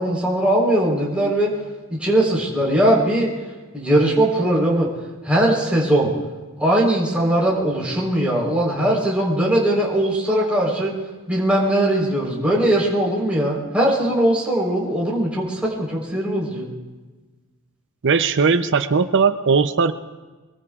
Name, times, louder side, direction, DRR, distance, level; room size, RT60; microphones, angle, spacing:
voice 1, 0.0-1.5 1.9-3.3 3.7-4.9 5.2-6.1 6.6-10.9 11.3-16.7, right 1 dB, 5° right, -5 dB, 4.0 m, -20 dB
voice 2, 18.0-19.9, right 5 dB, 60° right, 10 dB, 0.6 m, -18 dB
25.0 x 23.0 x 2.4 m, 1.3 s
head